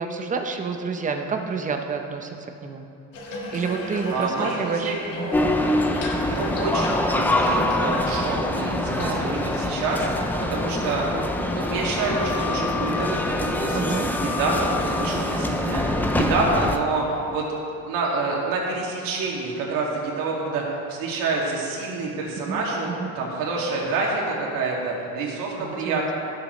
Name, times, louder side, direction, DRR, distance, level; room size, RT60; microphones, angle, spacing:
voice 1, 0.0-2.8 3.5-5.3 9.0-9.2 13.7-14.1 22.5-23.2 25.6-26.1, right 5 dB, 25° right, 5 dB, 0.8 m, -29 dB
Water tap faucet / Bathtub (filling or washing), 3.1-9.6, left 2 dB, 70° left, 2.0 m, -37 dB
voice 2, 4.1-5.0 6.2-17.4 17.8-22.9 23.2-26.1, right 3 dB, 85° right, -3 dB, 2.3 m, -27 dB
sound 1, 5.3-16.8, left 1 dB, 5° left, 0.3 m, -24 dB
16.5 x 7.0 x 3.2 m, 2.7 s
cardioid pair, 150°, 32 cm